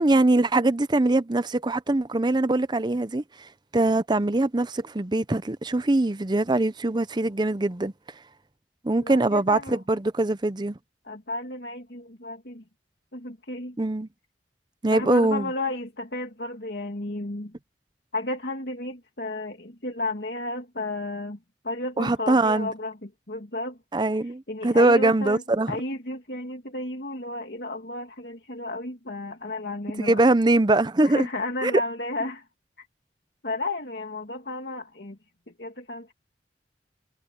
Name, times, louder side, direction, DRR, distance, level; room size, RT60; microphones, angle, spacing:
voice 1, 0.0-3.2 3.7-7.9 8.8-10.8 13.8-14.1 14.8-15.5 22.0-22.7 23.9-25.8 30.0-31.3 31.6-31.7, right 2 dB, 25° right, 0.6 m, -22 dB
voice 2, 9.0-9.8 11.0-12.6 13.1-13.8 14.9-17.5 18.1-21.4 21.6-23.8 24.5-25.4 25.7-30.2 31.0-32.5 32.8-32.9 33.4-35.2 35.5-36.1, left 2 dB, 65° left, 2.6 m, -33 dB
head